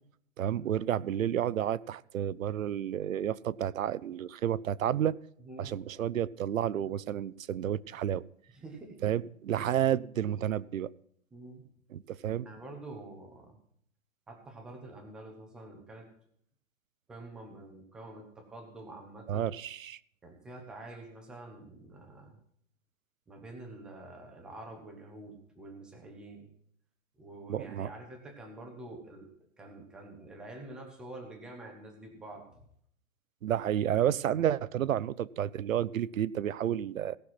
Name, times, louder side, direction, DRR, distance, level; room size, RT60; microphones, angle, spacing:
voice 1, 0.4-5.2 5.6-8.2 9.0-10.9 11.9-12.5 19.3-20.0 27.5-27.9 33.4-37.2, right 10 dB, 85° right, 19 dB, 0.6 m, -31 dB
voice 2, 5.4-5.7 6.7-7.0 8.5-9.2 11.3-11.7 12.1-13.6 14.3-16.1 17.1-19.5 20.2-22.4 23.3-26.5 27.2-29.3 29.6-32.6, right 2 dB, ahead, 2 dB, 0.5 m, -47 dB
17.0 x 5.8 x 5.9 m, 0.66 s
hypercardioid pair, 150°, 39 cm